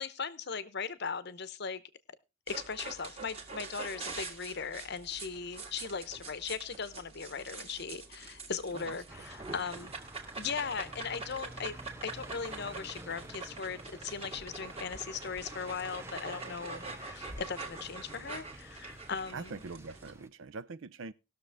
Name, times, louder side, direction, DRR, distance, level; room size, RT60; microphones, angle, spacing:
voice 1, 0.0-1.8 2.5-9.9 10.4-11.7 12.0-19.7, left 5 dB, 50° left, 0.8 m, -38 dB
sound 1, 2.5-20.1, right 3 dB, 30° right, 1.7 m, -45 dB
sound 2, 9.1-20.3, right 2 dB, 10° right, 0.5 m, -50 dB
sound 3, 12.6-16.8, left 1 dB, 15° left, 1.0 m, -62 dB
voice 2, 19.3-21.1, right 4 dB, 65° right, 0.5 m, -43 dB
19.5 x 6.5 x 3.5 m
head